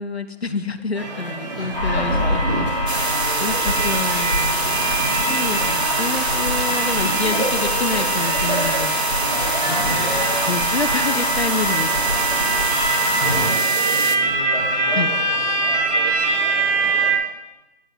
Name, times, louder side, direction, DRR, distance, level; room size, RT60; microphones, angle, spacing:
voice 1, 0.0-2.4 2.7-2.9 3.4-4.6 5.3-9.0 9.7-12.5 14.9-15.1 16.8-16.9, left 3 dB, 65° left, 12 dB, 1.0 m, -28 dB
sound 1, 1.0-17.1, right 3 dB, 40° right, 3.0 m, -24 dB
voice 2, 1.5-2.3 9.2-10.4 13.4-17.1, equal, 5° right, -7 dB, 1.4 m, -34 dB
sound 2, 1.7-13.5, left 1 dB, 50° left, 4.9 m, -25 dB
sound 3, 2.9-14.2, right 3 dB, 70° right, 1.5 m, -26 dB
14.5 x 5.7 x 9.6 m, 0.99 s
figure-of-eight pair, 170°, 34 cm